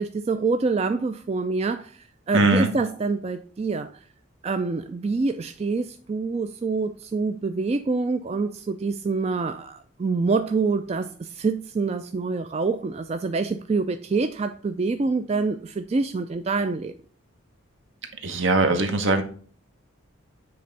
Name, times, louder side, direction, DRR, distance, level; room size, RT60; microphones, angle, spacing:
voice 1, 0.0-2.0 2.3-3.9 4.4-16.9, right 4 dB, 30° right, 0.3 m, -26 dB
voice 2, 2.3-2.7 18.2-19.2, right 2 dB, 65° right, 1.1 m, -20 dB
7.9 x 3.4 x 5.2 m
head